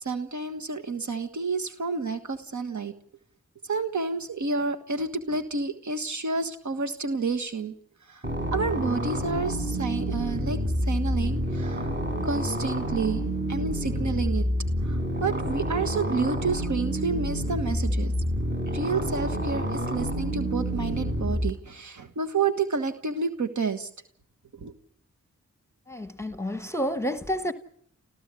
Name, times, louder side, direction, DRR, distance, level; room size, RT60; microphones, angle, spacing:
voice 1, 0.0-2.9 3.6-7.7 8.1-8.2 8.5-11.9 12.2-13.2 13.5-14.4 14.8-18.1 18.7-23.9 24.6-24.7, right 4 dB, 75° right, 1.5 m, -29 dB
sound 1, 8.2-21.5, equal, 35° right, 4.6 m, -28 dB
voice 2, 25.9-27.5, equal, 10° left, 1.1 m, -29 dB
30.0 x 14.0 x 8.4 m
cardioid pair, 50°, 30 cm